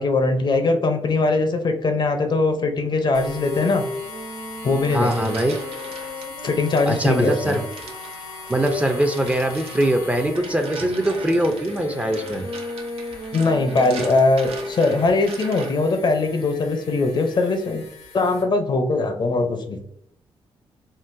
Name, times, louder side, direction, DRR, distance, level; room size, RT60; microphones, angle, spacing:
voice 1, 0.0-3.8 4.6-5.3 6.4-7.6 13.3-17.8 18.1-19.8, left 3 dB, 45° left, 6 dB, 0.5 m, -21 dB
sound 1, 3.1-18.4, left 3 dB, 85° left, 0.9 m, -41 dB
sound 2, 3.4-8.8 9.5-14.8, left 2 dB, 45° right, 0.9 m, -35 dB
sound 3, 4.7-6.3 6.8-16.0, right 4 dB, 75° right, 0.6 m, -40 dB
voice 2, 4.9-5.6 6.9-7.6 8.5-12.5, right 1 dB, 15° right, 5 dB, 0.4 m, -22 dB
3.7 x 2.1 x 2.5 m, 0.71 s
cardioid pair, 70°, 10 cm